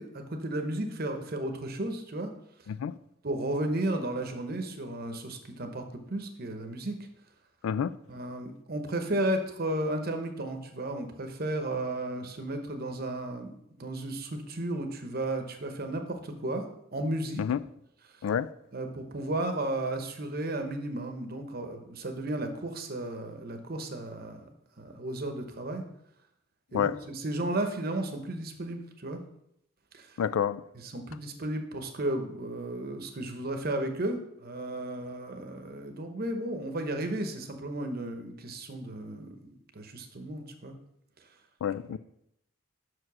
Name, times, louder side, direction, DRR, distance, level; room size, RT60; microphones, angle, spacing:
voice 1, 0.0-2.3 3.2-6.9 8.1-16.7 16.9-17.4 18.7-24.5 24.8-25.8 26.7-29.2 29.9-30.2 30.7-40.7, right 1 dB, 45° right, 0.9 m, -34 dB
voice 2, 30.2-30.6 41.6-42.0, left 8 dB, 80° left, 0.3 m, -28 dB
6.1 x 4.8 x 6.2 m
head